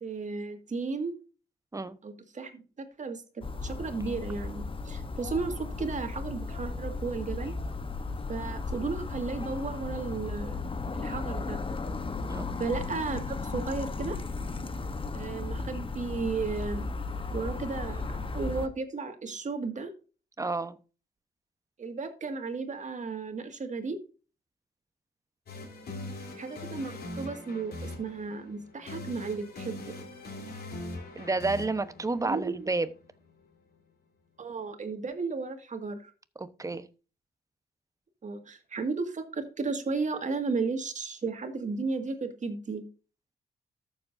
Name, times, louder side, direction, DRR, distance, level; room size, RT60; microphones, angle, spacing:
voice 1, 0.0-1.1 2.0-7.5 8.3-10.6 10.9-11.6 12.6-14.2 15.1-16.8 17.3-19.9 21.8-24.0 26.3-29.8 32.2-32.7 34.4-36.1 38.2-42.8, right 4 dB, 50° right, 1.9 m, -34 dB
sound 1, 3.4-18.7, left 3 dB, 30° left, 1.0 m, -35 dB
voice 2, 20.4-20.8 31.2-32.9 36.4-36.9, right 3 dB, 20° right, 0.9 m, -30 dB
sound 2, 25.5-33.4, left 2 dB, 70° left, 3.3 m, -42 dB
13.5 x 7.3 x 2.6 m
cardioid pair, 70°, 17 cm